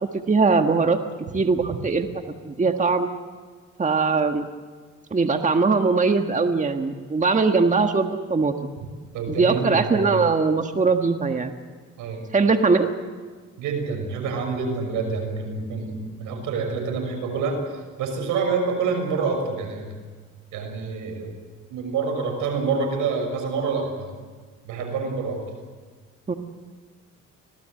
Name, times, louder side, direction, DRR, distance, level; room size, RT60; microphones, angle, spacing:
voice 1, 0.3-1.0 1.3-2.1 2.4-3.1 3.8-4.4 5.1-8.5 9.3-11.5 12.3-12.9 26.3-26.4, right 4 dB, 25° right, 6 dB, 1.5 m, -21 dB
voice 2, 9.1-10.2 12.0-12.2 13.6-17.6 18.0-19.9 20.5-21.3 21.7-24.1 24.6-25.4, right 4 dB, 90° right, 4 dB, 6.1 m, -27 dB
25.5 x 18.0 x 7.8 m, 1.5 s
cardioid pair, 90°, 30 cm